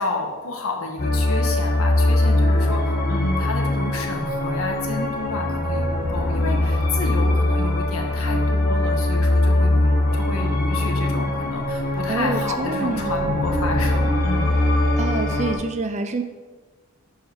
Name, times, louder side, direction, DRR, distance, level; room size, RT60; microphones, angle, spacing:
voice 1, 0.0-14.5, left 2 dB, 75° left, 2 dB, 1.4 m, -30 dB
sound 1, 1.0-15.5, left 1 dB, 40° left, 1.2 m, -21 dB
voice 2, 12.1-13.4 15.0-16.2, right 3 dB, 30° right, 8 dB, 0.5 m, -27 dB
11.0 x 4.9 x 4.4 m, 1.3 s
head